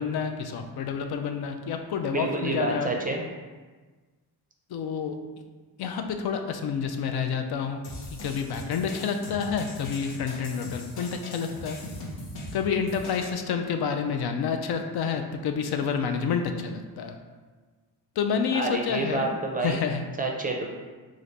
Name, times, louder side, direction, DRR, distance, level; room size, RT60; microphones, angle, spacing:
voice 1, 0.0-2.9 4.7-5.2 5.8-7.8 8.2-11.8 12.5-17.1 18.2-19.3 19.6-20.0, left 6 dB, 60° left, 5 dB, 0.5 m, -29 dB
voice 2, 2.1-3.2 18.5-19.8 20.2-20.7, right 2 dB, 20° right, 1 dB, 0.5 m, -28 dB
sound 1, 7.8-13.4, left 1 dB, 90° left, 0.9 m, -40 dB
3.1 x 2.5 x 4.0 m, 1.4 s
cardioid pair, 65°, 43 cm